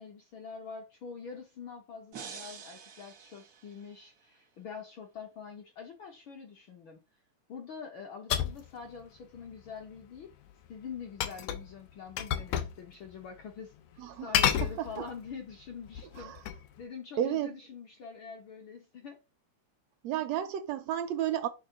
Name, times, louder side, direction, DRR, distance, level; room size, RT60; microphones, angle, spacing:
voice 1, 0.0-7.0 7.5-10.3 10.7-13.7 14.2-19.2, left 6 dB, 65° left, 1.3 m, -45 dB
sound 1, 2.1-4.3, right 6 dB, 60° right, 0.9 m, -47 dB
sound 2, 8.3-8.7 11.2-11.7 12.2-12.8 13.1-13.2 14.3-15.3 15.9-16.7, left 10 dB, 90° left, 2.1 m, -30 dB
voice 2, 14.0-14.3 14.6-15.1 16.2-16.4 17.2-17.5 20.0-21.5, right 11 dB, 75° right, 1.7 m, -32 dB
6.7 x 3.5 x 5.7 m
omnidirectional pair, 3.3 m